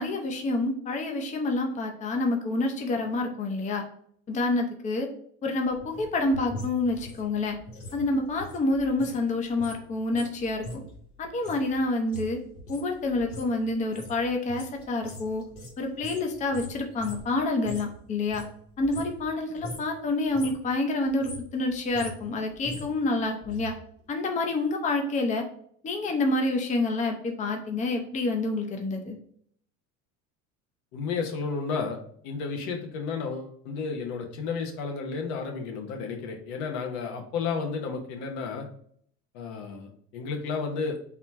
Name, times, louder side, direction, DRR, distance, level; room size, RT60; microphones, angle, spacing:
voice 1, 0.0-3.8 4.3-5.1 5.4-7.6 7.9-10.8 11.2-12.4 12.7-15.4 15.8-18.4 18.8-23.7 24.1-25.4 25.8-29.2, left 2 dB, 20° left, 3 dB, 0.6 m, -28 dB
sound 1, 5.7-9.2 9.5-18.0 18.2-19.3 19.6-19.9 20.2-20.7 21.0-23.7 24.0-24.1, left 1 dB, 40° left, 1.4 m, -42 dB
voice 2, 30.9-32.0 32.2-38.7 39.3-41.0, left 5 dB, 85° left, 3 dB, 1.1 m, -32 dB
4.1 x 2.8 x 4.6 m, 0.62 s
cardioid pair, 150°, 34 cm